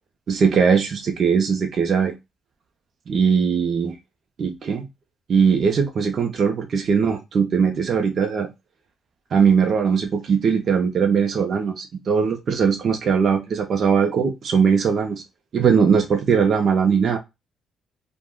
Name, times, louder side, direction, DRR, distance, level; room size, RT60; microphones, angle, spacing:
voice 1, 0.3-2.1 3.1-3.9 4.4-4.9 5.3-8.5 9.3-15.2 15.5-17.2, right 6 dB, 45° right, 0.5 m, -20 dB
3.4 x 2.0 x 2.2 m
cardioid pair, 145°, 0 cm